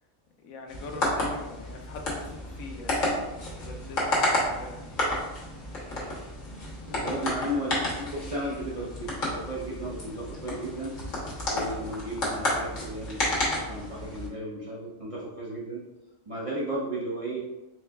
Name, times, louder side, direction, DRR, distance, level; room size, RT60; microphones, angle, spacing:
voice 1, 0.4-5.1 6.9-7.3, left 3 dB, 85° left, 3 dB, 1.1 m, -44 dB
sound 1, 0.7-14.3, left 1 dB, 70° left, 1.6 m, -31 dB
voice 2, 6.9-10.9 11.5-13.4 13.7-15.8 16.3-17.4, right 1 dB, 35° right, -6 dB, 0.5 m, -34 dB
4.5 x 3.7 x 2.3 m, 1.0 s
omnidirectional pair, 1.4 m